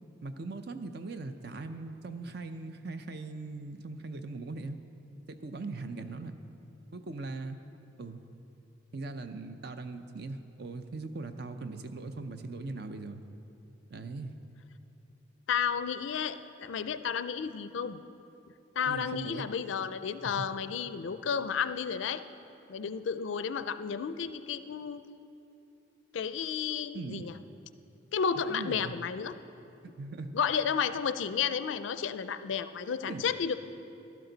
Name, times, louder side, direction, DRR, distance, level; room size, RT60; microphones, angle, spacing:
voice 1, 0.2-4.8 5.3-6.3 6.9-7.6 8.0-8.2 8.9-13.2 13.9-14.3 18.8-19.5 20.2-20.5 26.9-27.3 28.4-29.0 30.0-30.3 33.1-33.3, right 3 dB, 55° right, 9 dB, 0.5 m, -40 dB
voice 2, 15.5-18.0 18.8-22.2 22.7-25.0 26.1-27.3 28.1-29.4 30.3-33.5, left 7 dB, 75° left, 12 dB, 0.4 m, -32 dB
12.5 x 12.0 x 4.0 m, 2.8 s
head